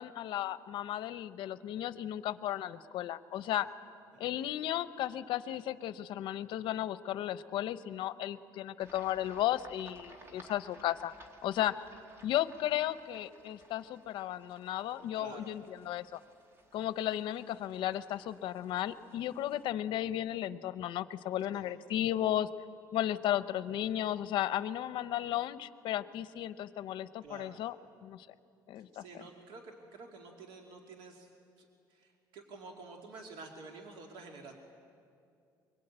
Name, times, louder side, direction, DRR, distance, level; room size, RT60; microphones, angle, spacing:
voice 1, 0.0-3.7 4.2-11.1 11.4-11.8 12.2-16.2 16.7-22.5 22.9-27.7 28.0-28.3 28.7-29.0, left 12 dB, 70° left, 14 dB, 0.8 m, -34 dB
voice 2, 4.1-4.5 10.1-10.6 15.1-15.5 21.5-21.7 27.2-27.6 28.7-31.3 31.6-34.5, right 3 dB, 85° right, 2 dB, 2.5 m, -50 dB
sound 1, 8.8-19.6, right 1 dB, 30° right, 2.4 m, -59 dB
24.0 x 23.0 x 8.9 m, 2.5 s
cardioid pair, 145°, 9 cm